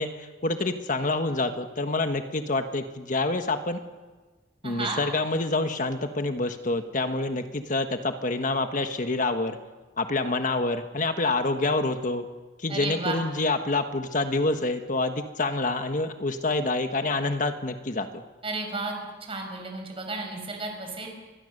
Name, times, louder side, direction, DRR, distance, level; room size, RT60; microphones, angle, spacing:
voice 1, 0.0-3.8 4.6-9.6 10.0-12.3 12.6-18.2, left 2 dB, 50° left, 7 dB, 1.4 m, -27 dB
voice 2, 4.6-5.0 12.7-13.2 18.4-18.9 19.3-21.1, right 3 dB, 35° right, 3 dB, 5.8 m, -32 dB
26.0 x 21.0 x 6.7 m, 1.3 s
head